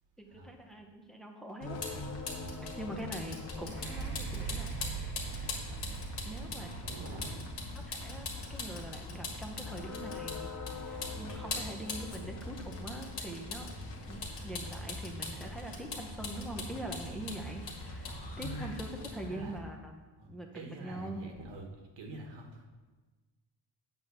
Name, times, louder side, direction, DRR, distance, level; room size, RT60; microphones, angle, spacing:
voice 1, 0.2-1.8 2.6-4.9 6.2-6.8 7.7-13.7 14.1-21.3, right 1 dB, ahead, 1 dB, 0.7 m, -43 dB
Vehicle, 1.6-19.6, left 2 dB, 70° left, 1.8 m, -41 dB
sound 1, 1.6-19.1, left 3 dB, 35° left, 1.0 m, -47 dB
sound 2, 3.6-11.4 12.0-12.1, right 6 dB, 25° right, 1.2 m, -43 dB
voice 2, 6.8-7.4 19.3-19.6 20.2-21.7 22.0-22.6, right 2 dB, 80° right, 2 dB, 1.3 m, -46 dB
8.2 x 3.7 x 6.6 m, 1.3 s
cardioid pair, 140°, 44 cm